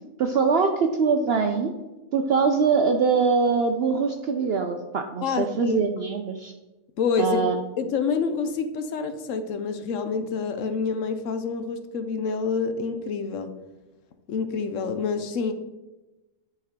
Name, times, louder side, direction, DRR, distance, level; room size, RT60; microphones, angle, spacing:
voice 1, 0.2-1.7 2.1-6.5 7.2-7.5, right 5 dB, 65° right, 5 dB, 0.6 m, -23 dB
voice 2, 5.2-5.8 7.0-7.4 7.8-13.5 14.3-15.5, left 5 dB, 65° left, 8 dB, 0.9 m, -27 dB
10.0 x 4.3 x 3.6 m, 1.1 s
omnidirectional pair, 1.5 m